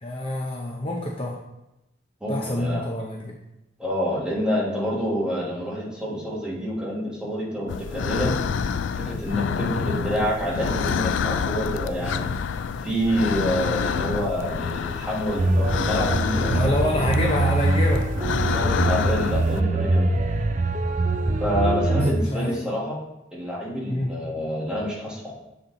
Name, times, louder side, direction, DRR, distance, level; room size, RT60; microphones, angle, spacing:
voice 1, 0.0-1.4 2.3-3.4 16.5-18.4 22.1-22.5 23.9-24.1, left 1 dB, 30° left, -1 dB, 0.7 m, -27 dB
voice 2, 2.2-2.9 3.8-8.3 9.0-12.3 12.8-17.3 18.4-20.1 21.4-23.0 23.3-25.3, equal, 5° right, -5 dB, 1.7 m, -27 dB
sound 1, 7.7-19.6, left 6 dB, 90° left, 0.3 m, -28 dB
sound 2, 15.4-22.1, right 2 dB, 45° right, 0.5 m, -23 dB
7.4 x 4.2 x 3.9 m, 0.93 s
head